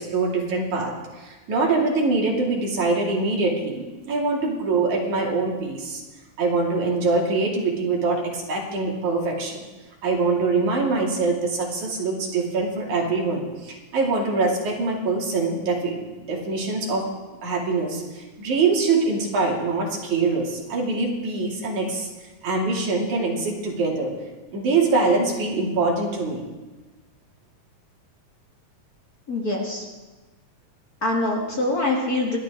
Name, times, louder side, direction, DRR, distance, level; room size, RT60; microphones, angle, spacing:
voice 1, 0.0-6.0 6.4-9.6 10.0-17.1 17.4-24.1 24.5-26.4, right 3 dB, 80° right, -2 dB, 4.0 m, -24 dB
voice 2, 29.3-29.8 31.0-32.4, left 2 dB, 35° left, -2 dB, 2.4 m, -24 dB
29.5 x 12.0 x 3.7 m, 1.2 s
omnidirectional pair, 3.4 m